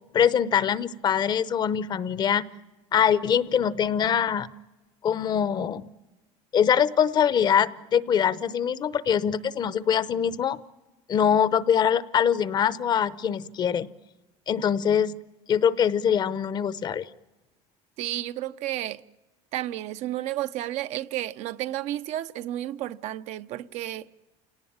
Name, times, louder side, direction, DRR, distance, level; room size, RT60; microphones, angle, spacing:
voice 1, 0.1-2.5 2.9-4.5 5.0-5.8 6.5-10.6 11.1-13.9 14.5-15.2 15.5-17.1, left 8 dB, 35° left, 0.8 m, -23 dB
voice 2, 18.0-19.0 19.5-24.1, right 14 dB, 65° right, 0.7 m, -32 dB
28.0 x 18.5 x 8.7 m
cardioid pair, 145°, 13 cm